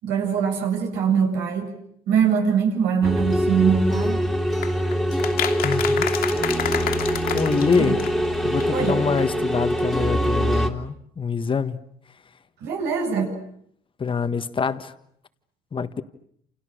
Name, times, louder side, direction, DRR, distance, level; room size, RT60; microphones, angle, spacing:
voice 1, 0.0-1.7 2.1-4.2 7.8-7.9 8.7-9.0 12.6-13.3, right 7 dB, 80° right, 7.8 m, -22 dB
sound 1, 3.0-10.7, equal, ahead, 2.7 m, -23 dB
sound 2, 4.6-8.3 8.6-8.7 8.9-9.0 9.2-9.3, left 9 dB, 65° left, 2.8 m, -29 dB
voice 2, 5.6-6.1 7.3-8.0 8.4-11.8 14.0-14.9 15.7-16.0, left 5 dB, 30° left, 1.5 m, -25 dB
29.0 x 28.5 x 6.5 m
cardioid pair, 110°, 17 cm